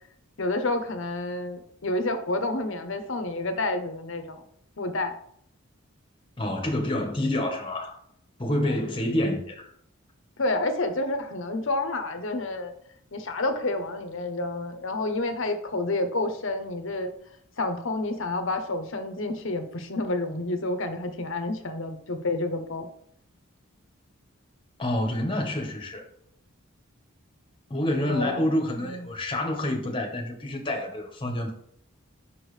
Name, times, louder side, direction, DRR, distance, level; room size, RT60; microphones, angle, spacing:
voice 1, 0.4-4.4 4.8-5.1 10.4-12.7 13.1-17.1 17.6-22.9 28.0-28.4 28.8-29.1, left 2 dB, 60° left, 7 dB, 0.8 m, -29 dB
voice 2, 6.4-8.0 8.4-9.7 24.8-26.0 27.7-31.5, left 1 dB, 25° left, 2 dB, 1.1 m, -28 dB
6.3 x 5.8 x 3.2 m, 0.67 s
head